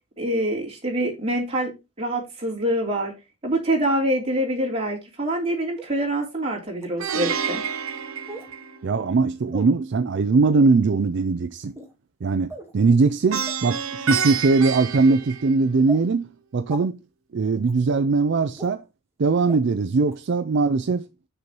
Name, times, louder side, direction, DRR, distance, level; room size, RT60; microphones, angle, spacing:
voice 1, 0.2-1.7 2.0-3.1 3.4-7.6, right 1 dB, 30° right, 3.2 m, -25 dB
sound 1, 5.8-5.9 6.8-6.9 8.3-8.5 9.5-9.7 10.5-10.7 11.6-11.9 12.5-12.7 13.5-13.6 14.2-14.4 15.1-15.2 15.9-16.0 16.7-16.8 17.6-17.7 18.6-18.7 19.5-19.6 20.1-20.2, right 1 dB, 15° right, 1.4 m, -38 dB
Plucked string instrument, 7.0-9.1 13.3-15.9, right 6 dB, 80° right, 0.9 m, -29 dB
voice 2, 8.8-11.7 12.2-17.0 17.3-18.8 19.2-21.1, right 4 dB, 55° right, 0.4 m, -21 dB
6.8 x 6.7 x 3.0 m
head